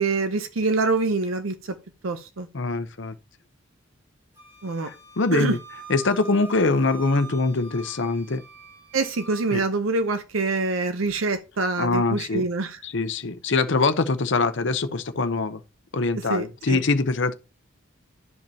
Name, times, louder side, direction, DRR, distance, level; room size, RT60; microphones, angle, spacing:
voice 1, 0.0-1.8 2.0-2.5 4.6-4.9 5.3-5.6 8.9-12.8 16.3-16.8, right 3 dB, 85° right, 0.7 m, -25 dB
voice 2, 2.5-3.1 4.8-5.6 5.9-8.4 9.5-9.6 11.8-12.4 12.8-15.6 15.9-17.3, left 3 dB, 60° left, 0.7 m, -23 dB
Wind instrument woodwind instrument, 4.4-9.6, right 3 dB, 15° right, 2.2 m, -44 dB
12.0 x 5.2 x 2.8 m
head